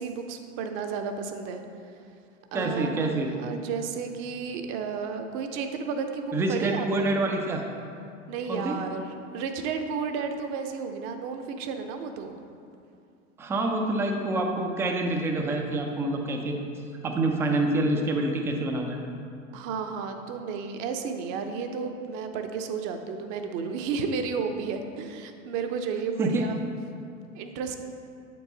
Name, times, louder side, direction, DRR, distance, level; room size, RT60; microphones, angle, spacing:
voice 1, 0.0-1.6 2.5-7.1 8.3-12.4 19.5-26.6 27.3-27.8, right 5 dB, 40° right, 6 dB, 0.7 m, -32 dB
voice 2, 2.5-3.3 6.3-7.6 8.5-8.8 13.4-16.6 17.0-19.0 26.2-26.4, right 2 dB, 5° right, 2 dB, 0.3 m, -27 dB
7.8 x 4.6 x 3.9 m, 2.5 s
hypercardioid pair, 90°, 40 cm